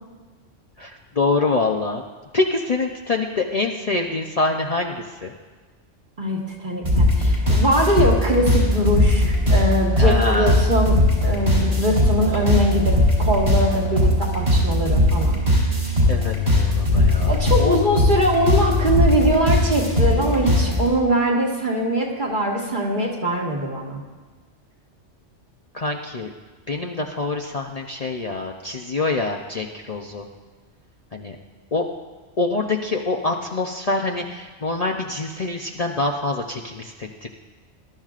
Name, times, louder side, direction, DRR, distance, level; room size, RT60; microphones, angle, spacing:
voice 1, 0.8-2.0 2.3-5.3 10.0-10.7 16.1-17.8 25.7-26.3 26.7-30.2 31.1-31.4 31.7-31.9 32.4-37.3, left 3 dB, 40° left, 0 dB, 0.7 m, -25 dB
voice 2, 6.2-15.4 17.3-24.0, equal, 45° right, -2 dB, 2.0 m, -22 dB
sound 1, 6.8-20.9, left 1 dB, 60° right, 4.3 m, -19 dB
21.0 x 12.0 x 2.5 m, 1.3 s
omnidirectional pair, 1.2 m